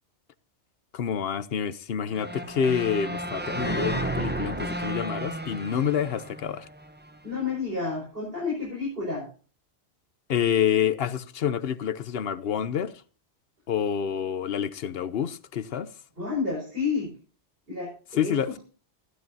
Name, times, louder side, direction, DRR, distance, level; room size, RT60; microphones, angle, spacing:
voice 1, 0.9-6.7 10.3-12.9 13.7-15.9 18.2-18.6, left 8 dB, 65° left, 1.0 m, -27 dB
sound 1, 2.1-7.2, right 1 dB, 10° right, 0.8 m, -32 dB
voice 2, 7.2-9.3 16.2-17.1 17.7-18.6, left 4 dB, 60° right, 5.7 m, -30 dB
14.5 x 12.0 x 2.8 m
omnidirectional pair, 1.1 m